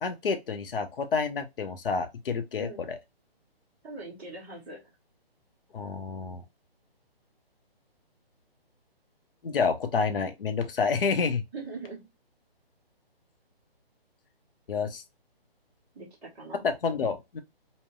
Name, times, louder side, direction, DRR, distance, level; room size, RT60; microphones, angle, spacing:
voice 1, 0.0-3.0 5.7-6.4 9.4-11.4 14.7-15.0 16.8-17.4, left 5 dB, 60° left, 0.7 m, -29 dB
voice 2, 3.8-4.8 11.5-12.1 15.9-16.6, right 3 dB, 5° right, 0.6 m, -41 dB
3.7 x 2.1 x 2.3 m
figure-of-eight pair, 145°, 31 cm